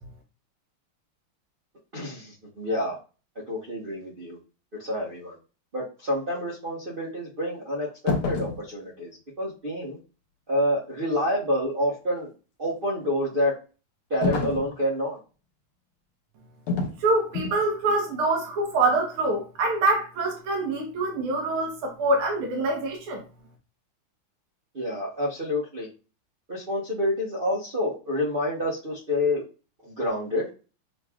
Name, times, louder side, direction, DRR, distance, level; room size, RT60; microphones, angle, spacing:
voice 1, 1.9-3.0 3.5-4.4 4.8-5.4 5.7-10.0 10.5-12.3 12.6-13.5 14.1-15.2 24.7-25.9 26.5-29.4 29.8-30.5, left 1 dB, 35° right, 1.0 m, -28 dB
sound 1, 8.1-8.6 14.2-14.7 16.7-17.0 17.3-17.6, left 4 dB, 75° left, 1.8 m, -27 dB
voice 2, 17.0-23.2, right 2 dB, 75° right, 1.9 m, -25 dB
6.6 x 3.1 x 2.3 m
omnidirectional pair, 2.4 m